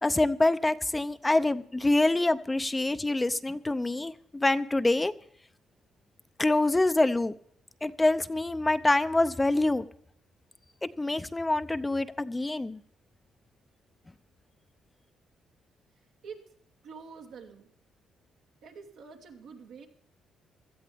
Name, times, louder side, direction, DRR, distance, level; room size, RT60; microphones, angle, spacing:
voice 1, 0.0-5.1 6.4-7.3 7.8-9.8 11.0-12.8, left 2 dB, 15° left, 12 dB, 0.6 m, -26 dB
voice 2, 16.8-17.7 18.6-19.9, right 5 dB, 80° right, 1 dB, 2.5 m, -46 dB
17.5 x 13.0 x 3.5 m, 0.65 s
cardioid pair, 90°, 0 cm